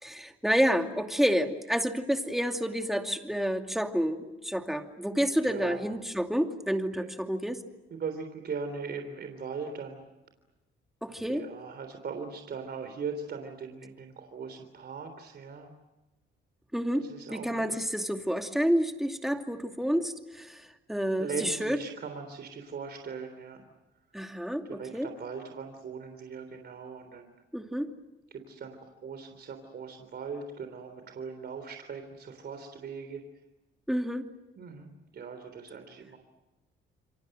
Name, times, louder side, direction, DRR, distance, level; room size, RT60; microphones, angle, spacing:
voice 1, 0.0-7.6 11.0-11.4 16.7-17.0 17.3-21.8 24.1-25.1 27.5-27.9 33.9-34.3, equal, ahead, 5 dB, 2.6 m, -29 dB
voice 2, 5.4-5.8 6.9-7.1 7.9-10.0 11.3-15.7 17.0-17.7 21.2-23.6 24.8-27.3 28.3-28.8 29.0-33.2 34.6-36.2, right 5 dB, 55° right, 6 dB, 3.6 m, -39 dB
28.5 x 23.5 x 7.8 m, 1.1 s
cardioid pair, 90°, 20 cm